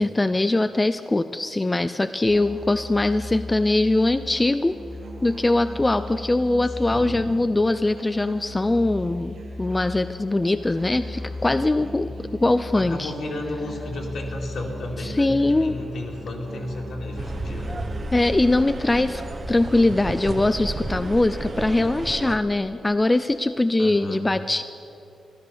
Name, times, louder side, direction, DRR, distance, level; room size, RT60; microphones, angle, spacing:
voice 1, 0.0-4.8 5.2-12.1 12.4-13.1 15.0-15.8 18.1-19.2 19.5-24.6, left 2 dB, 20° left, 10 dB, 0.4 m, -22 dB
Musical instrument, 2.3-19.2, left 2 dB, 80° right, 2.5 m, -37 dB
voice 2, 6.9-7.3 12.7-17.8 23.8-24.3, left 1 dB, 65° left, 0 dB, 2.4 m, -33 dB
sound 1, 17.2-22.4, right 3 dB, 40° right, 1.0 m, -32 dB
14.0 x 11.5 x 6.9 m, 2.7 s
cardioid pair, 90°, 0 cm